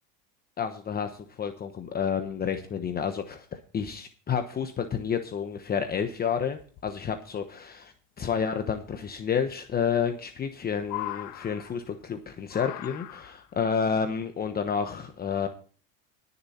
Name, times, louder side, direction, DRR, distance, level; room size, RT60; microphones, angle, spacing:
voice 1, 0.6-15.5, left 7 dB, 25° left, 7 dB, 1.1 m, -30 dB
sound 1, 5.5-5.6 5.9-6.0 6.6-7.1 8.7-8.8 10.0-10.5 10.8-12.0 12.5-13.5 14.5-14.6, left 15 dB, 55° left, 1.4 m, -39 dB
19.5 x 7.0 x 4.3 m, 0.41 s
supercardioid pair, 125°, 36 cm